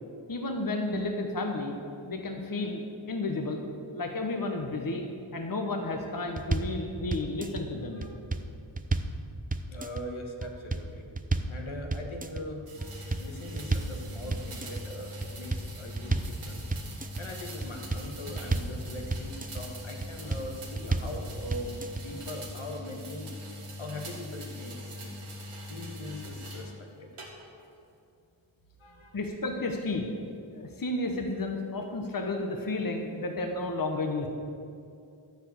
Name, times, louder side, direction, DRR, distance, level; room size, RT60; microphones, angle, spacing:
voice 1, 0.3-1.8 2.0-3.6 3.9-8.0 29.1-30.1 30.5-34.3, left 2 dB, 45° left, 3 dB, 1.2 m, -32 dB
sound 1, 6.4-6.8 7.1-7.6 8.0-9.2 9.5-10.0 10.4-10.9 11.2-11.6 11.9-12.4 12.8-14.0 14.3-14.8 15.2-16.4 16.7-17.2 17.6-18.8 19.1-19.6 20.0-20.5 20.8-21.2 21.5-22.0, right 3 dB, 15° right, 0.6 m, -31 dB
voice 2, 9.7-11.1 11.5-12.6 13.2-23.3 23.8-25.2 25.7-27.1 28.8-29.2, left 1 dB, 75° left, 2 dB, 1.6 m, -41 dB
sound 2, 12.7-26.7 27.2-27.7, left 1 dB, 90° right, 1.9 m, -42 dB
14.0 x 4.9 x 8.1 m, 2.5 s
cardioid pair, 50°, 49 cm